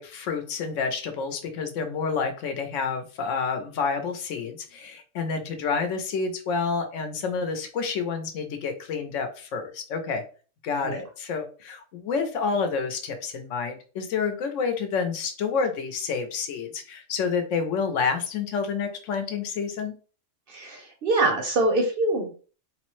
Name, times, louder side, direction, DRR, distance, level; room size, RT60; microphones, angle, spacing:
voice 1, 0.0-10.2 10.6-19.9, left 5 dB, 75° left, 6 dB, 1.0 m, -29 dB
voice 2, 20.5-22.3, right 2 dB, 60° right, 4 dB, 0.6 m, -24 dB
3.2 x 2.0 x 3.0 m, 0.38 s
omnidirectional pair, 1.3 m